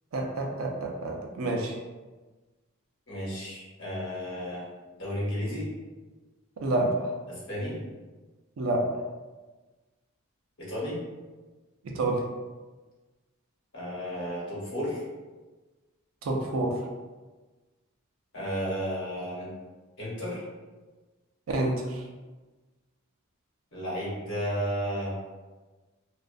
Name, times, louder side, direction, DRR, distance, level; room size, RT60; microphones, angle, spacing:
voice 1, 0.1-1.7 6.6-7.1 8.6-8.8 11.8-12.2 16.2-16.7 21.5-22.0, right 2 dB, 70° right, 1 dB, 0.4 m, -28 dB
voice 2, 3.1-4.7 5.0-5.6 7.3-7.8 10.7-11.0 13.7-15.0 18.3-19.5 20.0-20.4 23.7-25.2, equal, 60° left, -7 dB, 1.0 m, -33 dB
2.3 x 2.1 x 2.5 m, 1.2 s
head